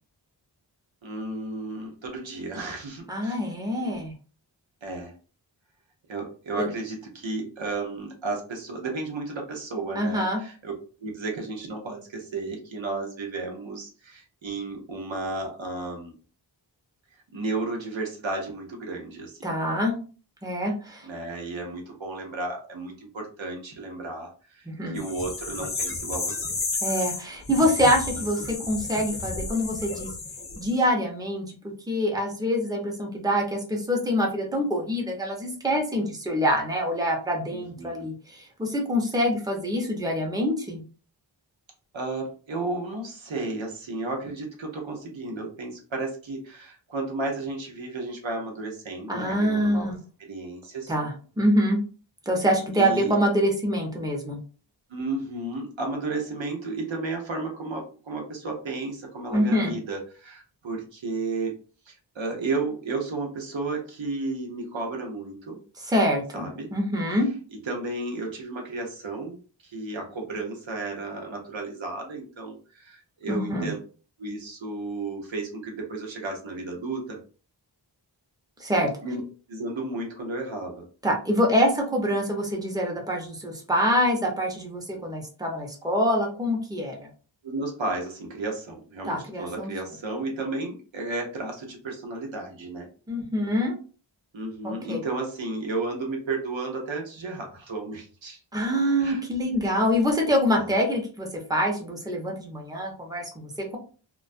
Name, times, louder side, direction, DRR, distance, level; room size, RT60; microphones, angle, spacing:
voice 1, 1.0-3.4 4.8-5.1 6.1-10.7 11.0-16.1 17.3-19.5 21.0-24.7 24.9-26.4 37.5-38.1 41.9-49.9 50.2-50.9 52.7-53.1 54.9-61.5 61.9-65.6 66.3-66.7 67.6-73.8 74.2-77.2 79.0-79.2 79.5-80.8 87.4-92.9 94.3-98.4 99.0-99.2 100.6-100.7, right 3 dB, 85° right, 1 dB, 0.8 m, -33 dB
voice 2, 3.1-4.1 6.6-6.7 9.9-10.4 19.4-20.0 20.4-21.1 24.8-25.0 26.8-30.1 30.6-31.5 31.9-40.8 49.1-50.0 50.9-51.8 52.3-54.4 59.3-59.7 65.9-67.3 73.3-73.7 78.6-78.9 81.0-87.1 89.1-89.7 93.1-93.7 94.6-95.0 98.5-103.8, equal, 10° right, 0 dB, 0.7 m, -25 dB
sound 1, 25.0-30.8, left 3 dB, 30° left, 0.4 m, -32 dB
2.2 x 2.2 x 2.5 m, 0.38 s
wide cardioid pair, 55°, 45 cm